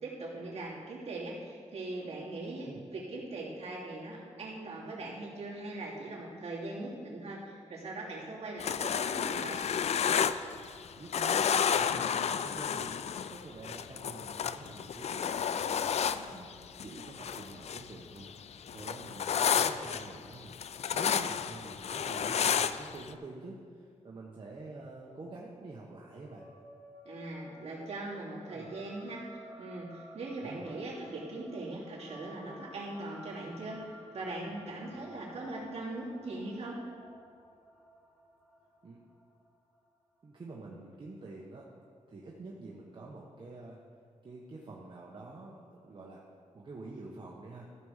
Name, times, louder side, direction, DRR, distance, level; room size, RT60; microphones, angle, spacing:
voice 1, 0.0-9.6 27.0-36.8, right 2 dB, 55° right, -5 dB, 2.9 m, -40 dB
sound 1, 8.6-10.9 11.1-17.9 18.2-23.1, left 7 dB, 60° left, 0.4 m, -31 dB
voice 2, 11.0-15.8 16.3-16.5 16.8-18.3 18.7-26.5 28.5-28.7 30.4-30.8 38.8-39.0 40.2-41.7 42.1-43.8 44.2-46.2 46.5-47.7, right 2 dB, 40° right, -3 dB, 1.2 m, -47 dB
sound 2, 26.1-40.8, equal, 5° left, 2.9 m, -55 dB
14.5 x 5.2 x 6.5 m, 2.2 s
wide cardioid pair, 115°, 12 cm